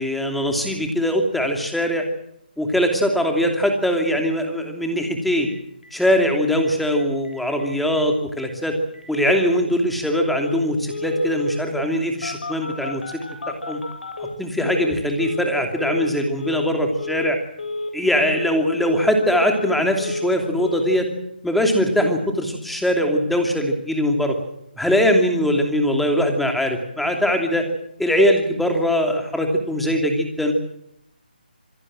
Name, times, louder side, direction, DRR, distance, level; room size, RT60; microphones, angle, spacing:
voice 1, 0.0-2.1 2.6-5.5 5.9-8.8 9.1-13.0 13.5-13.8 14.4-17.4 17.9-21.1 21.4-24.4 24.8-27.7 28.0-30.5, equal, ahead, 3 dB, 2.8 m, -21 dB
Telephone, 5.4-5.5 5.8-5.9 6.2-6.3 6.5-7.0 7.2-7.3 7.6-8.0 8.4-8.5 8.9-9.6 10.4-10.6 10.9-11.6 12.2-14.9 15.2-15.5 15.8-16.1 16.4-16.7 17.0-17.3 17.6-17.9 18.2-18.5 18.8-19.7 20.0-20.3 20.6-20.8, left 2 dB, 70° left, 8.0 m, -30 dB
27.0 x 17.0 x 7.6 m, 0.74 s
figure-of-eight pair, 160°, 5 cm